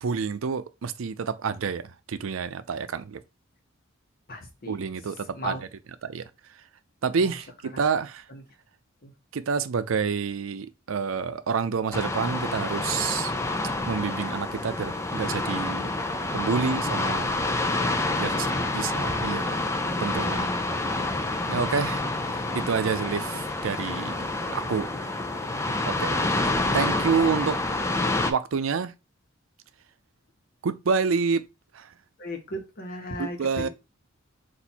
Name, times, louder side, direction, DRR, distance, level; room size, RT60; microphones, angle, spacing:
voice 1, 0.0-3.2 4.7-5.7 6.0-6.2 7.0-8.3 9.3-13.3 13.9-15.9 16.3-17.4 18.2-18.5 18.7-19.7 20.0-20.7 21.5-22.0 22.3-24.9 25.9-27.6 28.3-28.9 30.6-31.4 31.7-31.9 33.2-33.7, right 5 dB, 85° right, 0.5 m, -28 dB
voice 2, 4.3-4.8 5.3-5.6 7.2-7.3 7.7-7.8 8.3-8.4 9.0-9.1 17.7-17.9 18.3-19.6 21.4-21.7 24.8-25.0 32.2-33.7, left 1 dB, 50° left, 1.1 m, -37 dB
sound 1, 11.9-28.3, left 2 dB, 15° left, 0.4 m, -28 dB
4.4 x 2.6 x 4.1 m
head